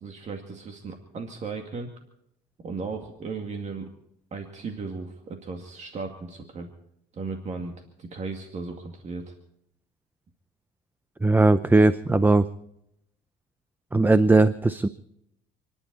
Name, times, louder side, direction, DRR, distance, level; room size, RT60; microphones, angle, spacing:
voice 1, 0.0-1.9 2.6-3.9 4.3-6.7 7.1-9.3, right 4 dB, 45° right, 3 dB, 2.2 m, -36 dB
voice 2, 11.2-12.4 13.9-14.9, right 2 dB, 10° right, 13 dB, 0.6 m, -19 dB
30.0 x 11.0 x 4.1 m, 0.79 s
cardioid pair, 110°, 17 cm